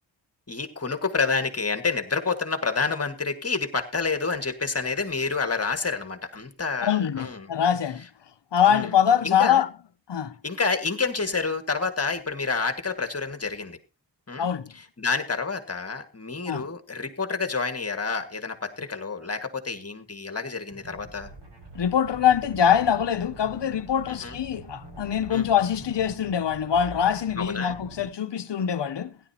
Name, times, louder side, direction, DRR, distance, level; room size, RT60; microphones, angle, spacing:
voice 1, 0.5-7.5 8.7-8.9 9.2-9.6 10.4-13.8 14.3-14.5 15.0-21.3 24.1-24.4 25.3-25.4 27.4-27.7, left 4 dB, 35° left, 1.8 m, -28 dB
voice 2, 6.8-8.1 8.5-9.7 10.1-10.4 14.4-14.7 16.5-16.7 21.7-29.1, left 8 dB, 70° left, 0.8 m, -23 dB
sound 1, 20.7-28.1, right 2 dB, 70° right, 5.5 m, -44 dB
16.5 x 11.0 x 2.8 m
wide cardioid pair, 85°, 44 cm